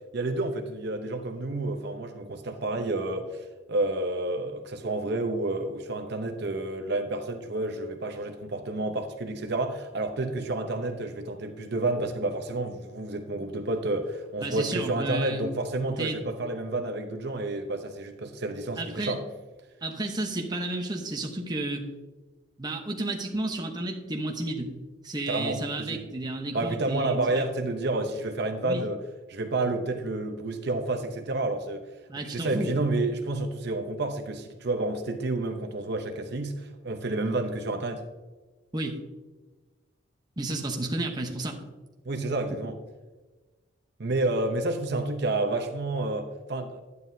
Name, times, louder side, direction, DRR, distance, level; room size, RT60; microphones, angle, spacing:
voice 1, 0.1-19.2 25.3-26.0 26.5-29.0 29.3-31.9 32.2-38.0 42.0-42.7 44.0-46.8, right 2 dB, 55° right, 5 dB, 0.7 m, -30 dB
voice 2, 14.4-15.4 16.0-16.2 18.8-19.2 19.8-21.9 22.6-24.7 25.0-27.4 28.6-28.8 32.1-32.7 38.7-39.0 40.4-41.6, right 2 dB, 20° right, 2 dB, 0.9 m, -32 dB
11.0 x 9.5 x 2.7 m, 1.2 s
head